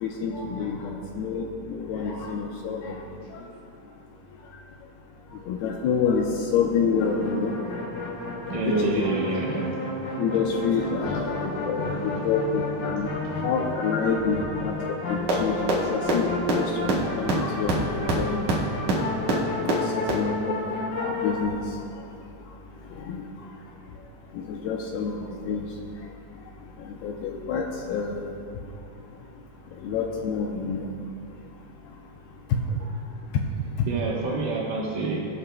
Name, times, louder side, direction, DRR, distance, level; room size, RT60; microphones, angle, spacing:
voice 1, 0.0-3.0 3.3-3.4 5.5-7.5 8.5-9.0 10.2-13.1 13.4-14.7 15.1-18.4 19.3-21.7 23.1-23.2 24.4-25.7 27.0-28.2 29.8-30.9, left 5 dB, 85° left, 0 dB, 2.2 m, -28 dB
sound 1, 2.9-3.5 6.8-21.5, left 2 dB, 60° left, 3.7 m, -32 dB
voice 2, 8.5-9.9 11.5-12.3 13.2-13.4 33.9-35.3, right 3 dB, 75° right, -4 dB, 1.9 m, -28 dB
sound 2, 15.3-15.4 15.7-15.8 16.1-16.2 16.5-16.6 16.9-17.0 17.3-17.4 17.7-17.8 18.1-18.2 18.5-18.6 18.9-19.0 19.3-19.4 19.7-19.8 20.1-20.2, right 5 dB, 60° right, 2.1 m, -22 dB
25.0 x 8.4 x 2.2 m, 2.4 s
omnidirectional pair, 5.4 m